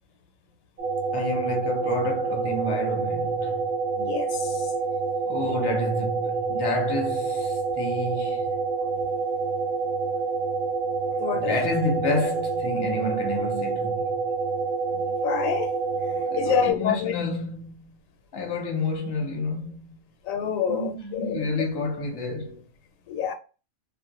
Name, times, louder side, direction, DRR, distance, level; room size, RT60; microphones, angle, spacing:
sound 1, 0.8-16.7, right 4 dB, 45° right, 0.8 m, -27 dB
voice 1, 1.1-3.7 5.3-8.6 11.3-14.2 16.2-17.9 18.3-20.0 20.7-22.6, left 2 dB, 30° left, 0.5 m, -30 dB
voice 2, 4.0-4.7 5.4-5.6 11.2-11.6 15.2-17.1 20.2-21.4 23.1-23.3, left 8 dB, 85° left, 1.0 m, -28 dB
2.4 x 2.0 x 2.8 m
omnidirectional pair, 1.4 m